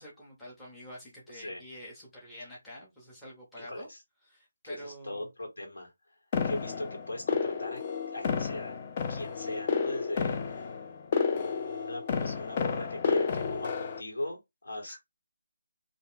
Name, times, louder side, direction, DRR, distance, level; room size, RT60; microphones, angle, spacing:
voice 1, 0.0-3.9 4.2-5.3 14.9-15.0, equal, 5° left, 0.8 m, -47 dB
voice 2, 3.6-4.0 4.6-5.9 6.4-7.8 8.1-8.8 9.1-10.8 11.3-15.0, left 1 dB, 75° left, 1.5 m, -39 dB
sound 1, 6.3-14.0, left 6 dB, 25° left, 0.3 m, -31 dB
2.4 x 2.2 x 3.5 m
hypercardioid pair, 170°, 0 cm